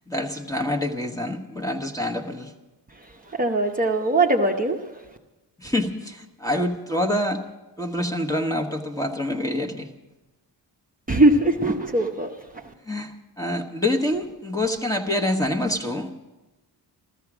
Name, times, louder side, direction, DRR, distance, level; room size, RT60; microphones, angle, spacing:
voice 1, 0.1-2.5 5.6-7.4 7.8-9.9 12.9-16.1, left 1 dB, 10° left, 1.2 m, -26 dB
voice 2, 3.4-4.8 11.1-12.6, right 2 dB, 20° right, 0.8 m, -21 dB
15.5 x 14.0 x 6.1 m
wide cardioid pair, 155°, 42 cm